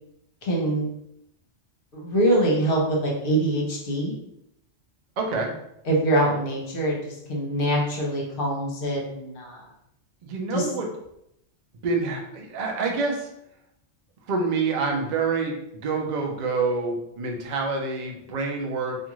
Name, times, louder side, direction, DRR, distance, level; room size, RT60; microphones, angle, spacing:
voice 1, 0.4-0.9 1.9-4.1 5.8-9.6 10.5-10.7, right 1 dB, 55° left, -2 dB, 0.9 m, -24 dB
voice 2, 5.2-5.5 10.2-10.9 11.8-13.3 14.3-19.0, right 4 dB, 55° right, 1 dB, 0.5 m, -27 dB
2.4 x 2.4 x 2.9 m, 0.79 s
omnidirectional pair, 1.2 m